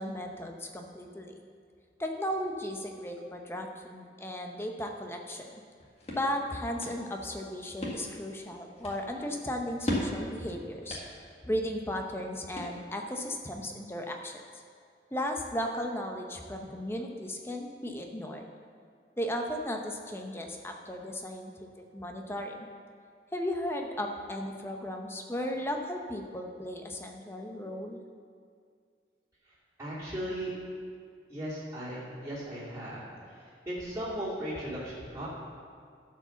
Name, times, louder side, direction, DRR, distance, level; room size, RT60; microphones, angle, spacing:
voice 1, 0.0-1.3 2.0-5.5 6.1-11.0 11.4-14.4 15.1-18.5 19.2-22.7 23.3-28.0, equal, 15° left, 2 dB, 0.8 m, -35 dB
sound 1, 5.5-13.2, left 1 dB, 35° left, 1.7 m, -39 dB
voice 2, 29.8-30.5 31.3-33.0 33.3-35.3, right 1 dB, 15° right, -10 dB, 2.7 m, -37 dB
11.0 x 5.0 x 6.9 m, 2.2 s
head